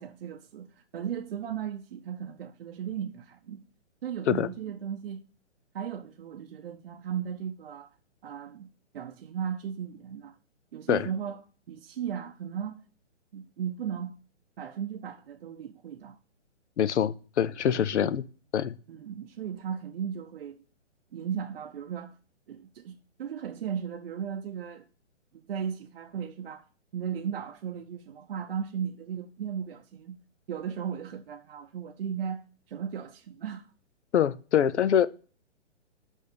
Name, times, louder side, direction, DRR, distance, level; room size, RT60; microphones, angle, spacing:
voice 1, 0.0-3.6 4.0-5.2 5.7-7.9 8.2-10.4 10.7-11.4 11.7-12.8 13.3-14.1 14.6-16.2 17.7-18.1 18.9-20.6 21.1-22.1 22.5-24.9 25.3-26.7 26.9-30.2 30.5-33.7, right 8 dB, 50° right, 0.7 m, -36 dB
voice 2, 16.8-18.2 18.5-18.8 34.1-35.1, left 9 dB, 70° left, 0.7 m, -24 dB
6.3 x 5.4 x 6.8 m
hypercardioid pair, 150°, 36 cm